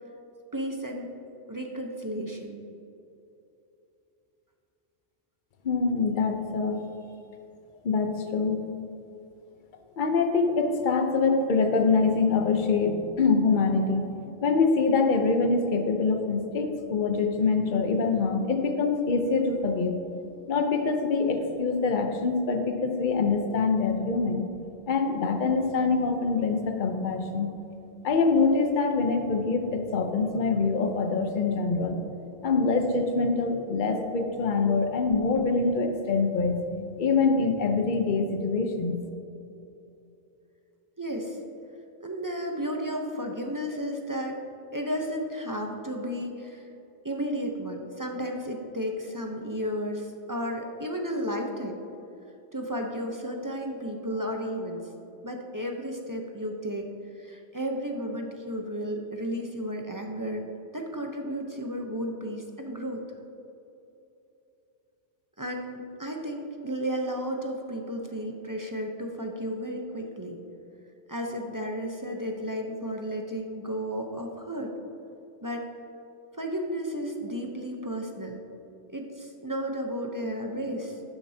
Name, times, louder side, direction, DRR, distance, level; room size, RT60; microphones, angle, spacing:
voice 1, 0.5-1.1 1.5-2.6 41.0-41.4 42.0-44.4 44.7-46.7 47.0-51.8 52.5-54.9 55.2-56.9 57.1-60.4 60.7-63.0 65.4-70.4 71.1-74.7 75.4-75.7 76.4-78.4 78.9-81.0, equal, 20° right, 2 dB, 0.7 m, -33 dB
voice 2, 5.6-6.8 7.8-8.7 10.0-14.2 14.4-20.0 20.5-24.5 24.9-27.5 28.0-32.0 32.4-36.6 37.0-39.0, left 4 dB, 45° left, 5 dB, 0.9 m, -25 dB
12.0 x 9.0 x 2.8 m, 2.9 s
omnidirectional pair, 1.2 m